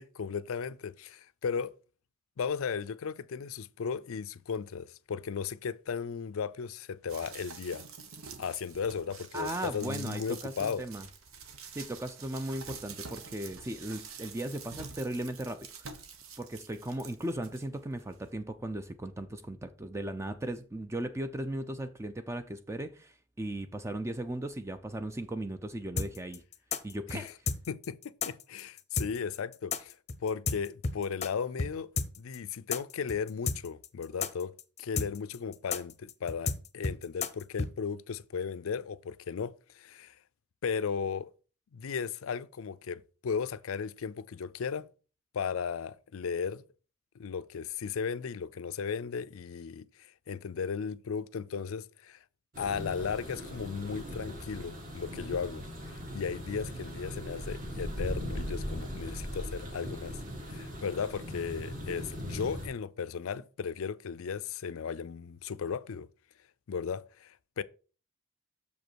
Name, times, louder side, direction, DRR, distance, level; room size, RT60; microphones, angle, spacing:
voice 1, 0.0-1.7 2.4-7.8 8.4-10.8 27.1-27.3 27.7-30.0 30.2-31.9 32.2-34.5 34.8-40.2 40.6-41.3 41.7-44.9 45.3-46.6 47.2-52.2 52.6-55.6 56.1-60.2 60.5-66.1 66.7-67.6, left 6 dB, 75° left, 0.4 m, -36 dB
sound 1, 7.1-17.6 18.1-18.2, right 5 dB, 75° right, 1.1 m, -47 dB
voice 2, 9.3-11.1 11.7-16.0 16.4-26.4 26.8-27.3, right 1 dB, 15° right, 0.4 m, -37 dB
sound 2, 26.0-31.3 31.6-31.7 32.0-37.7, left 4 dB, 30° left, 0.6 m, -32 dB
sound 3, 52.5-62.7, equal, 40° right, 1.9 m, -39 dB
6.8 x 5.2 x 4.5 m
head